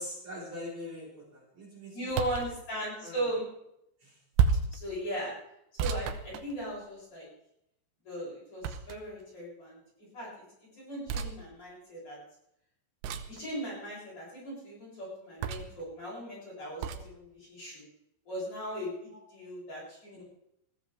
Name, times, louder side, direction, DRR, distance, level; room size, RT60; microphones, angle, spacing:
voice 1, 0.0-2.1 3.0-3.3 4.0-4.2 19.1-19.2 20.1-20.2, left 1 dB, 40° right, -4 dB, 5.6 m, -43 dB
voice 2, 1.9-3.4 4.7-5.3 5.8-7.3 8.0-9.8 10.1-12.2 13.3-17.8 18.3-20.2, equal, 30° left, -5 dB, 8.2 m, -38 dB
sound 1, 2.1-2.5 4.4-4.8 5.8-7.0 8.6-9.2 11.1-11.3 13.0-13.4 15.4-15.8 16.8-17.1, right 7 dB, 85° right, 3.2 m, -30 dB
21.0 x 14.5 x 3.5 m, 0.78 s
omnidirectional pair, 5.0 m